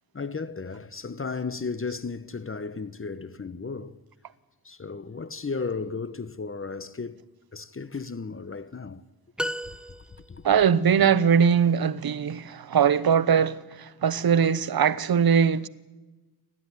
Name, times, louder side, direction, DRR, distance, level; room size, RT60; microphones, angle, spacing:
voice 1, 0.1-4.0 4.6-7.2 7.5-9.0 9.6-9.8 10.3-10.4, left 4 dB, 35° left, 1.1 m, -34 dB
sound 1, 9.4-10.5, equal, ahead, 1.0 m, -33 dB
voice 2, 10.4-15.7, right 7 dB, 65° right, 1.1 m, -21 dB
29.0 x 12.5 x 9.8 m
cardioid pair, 70°, 39 cm